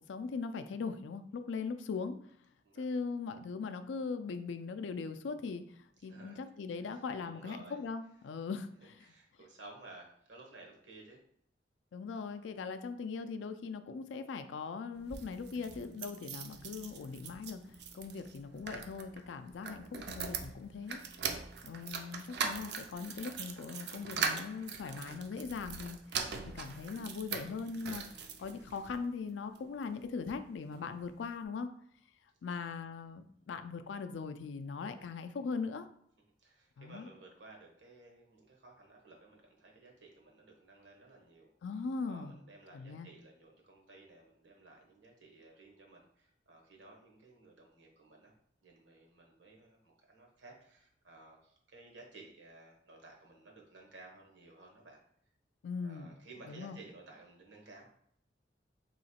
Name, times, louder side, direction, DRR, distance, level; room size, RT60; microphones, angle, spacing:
voice 1, 0.0-2.2 2.8-9.1 11.9-21.0 21.3-26.0 26.5-31.7 32.4-35.9 36.8-37.1 41.6-42.3 42.7-43.1 55.6-56.1 56.5-56.8, left 5 dB, 80° left, 9 dB, 0.4 m, -40 dB
voice 2, 6.0-6.4 6.8-7.8 9.0-11.2 17.9-18.0 32.6-32.7 36.4-41.5 42.0-48.3 48.6-55.0 55.8-58.0, right 2 dB, 80° right, 0 dB, 1.0 m, -56 dB
sound 1, 14.9-29.0 29.6-30.4 30.7-30.8 31.0-31.1, right 5 dB, 60° right, 0.4 m, -41 dB
3.1 x 2.8 x 4.2 m, 0.69 s
head